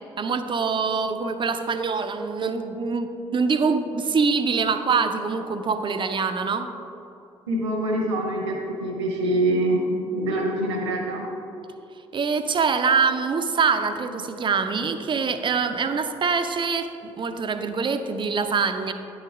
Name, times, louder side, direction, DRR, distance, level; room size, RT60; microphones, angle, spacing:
voice 1, 0.2-6.7 12.1-16.9 17.2-18.9, right 5 dB, 30° right, 8 dB, 0.6 m, -24 dB
voice 2, 7.5-9.9 10.1-11.3, right 1 dB, 75° right, 0 dB, 1.1 m, -25 dB
9.8 x 4.7 x 4.9 m, 2.8 s
figure-of-eight pair, 45°, 15 cm